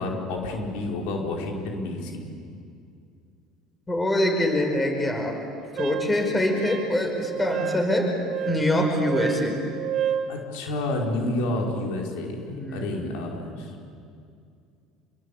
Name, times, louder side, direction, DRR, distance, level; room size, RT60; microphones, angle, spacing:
voice 1, 0.0-2.2 10.3-13.8, left 2 dB, 80° left, 1 dB, 4.8 m, -29 dB
voice 2, 3.9-5.4 5.8-8.1 8.4-9.6 12.5-13.5, left 1 dB, 15° left, 4 dB, 5.3 m, -24 dB
Wind instrument woodwind instrument, 5.8-10.3, right 8 dB, 50° right, 2.1 m, -31 dB
26.5 x 23.0 x 8.6 m, 2.4 s
supercardioid pair, 100°, 0 cm